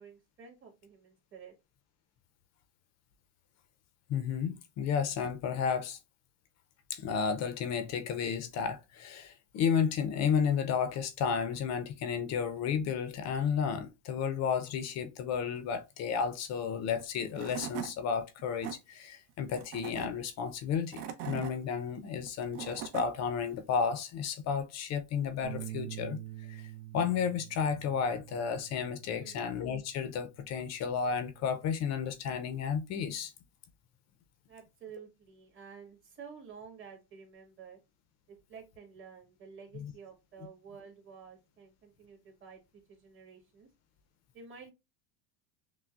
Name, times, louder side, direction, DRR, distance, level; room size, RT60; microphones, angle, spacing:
voice 1, 0.0-1.5 29.1-29.5 34.5-37.8 38.3-43.7 44.3-44.7, right 6 dB, 30° right, 1.5 m, -51 dB
voice 2, 4.1-6.0 6.9-33.3 39.7-39.9, left 6 dB, 40° left, 0.5 m, -32 dB
Tools / Wood, 17.0-17.1 17.3-17.9 18.4-18.7 19.5-20.1 20.7-21.5 22.3-23.1, right 10 dB, 75° right, 0.8 m, -40 dB
Bass guitar, 25.4-29.9 30.3-31.7, right 15 dB, 55° right, 0.5 m, -47 dB
5.9 x 2.1 x 2.3 m
supercardioid pair, 135°, 43 cm